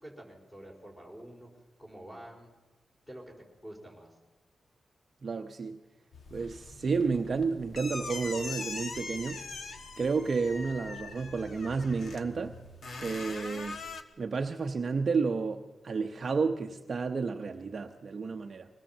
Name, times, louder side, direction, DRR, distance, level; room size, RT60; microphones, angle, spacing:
voice 1, 0.0-2.5 3.1-3.3 3.6-4.1, right 1 dB, 10° left, 0 dB, 4.8 m, -48 dB
voice 2, 5.2-5.8 6.3-9.4 10.0-12.5 13.0-13.8 14.2-18.7, right 4 dB, 35° right, 5 dB, 0.8 m, -31 dB
sound 1, 6.1-14.0, left 3 dB, 45° left, 1.3 m, -42 dB
23.0 x 18.5 x 7.3 m, 1.1 s
wide cardioid pair, 165°, 0 cm